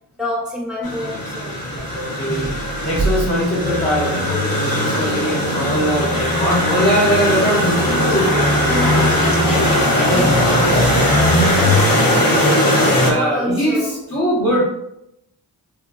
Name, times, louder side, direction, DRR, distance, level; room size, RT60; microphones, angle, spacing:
voice 1, 0.2-2.0 8.7-12.4 13.0-14.0, left 1 dB, ahead, -3 dB, 1.0 m, -28 dB
sound 1, 0.8-13.1, left 1 dB, 55° left, 0.8 m, -18 dB
voice 2, 1.9-2.5 2.8-8.5 9.9-10.3 13.0-14.6, equal, 35° left, -8 dB, 1.0 m, -21 dB
sound 2, 2.3-4.5, right 4 dB, 20° right, 0.4 m, -27 dB
3.1 x 2.2 x 2.3 m, 0.82 s
cardioid pair, 45°, 41 cm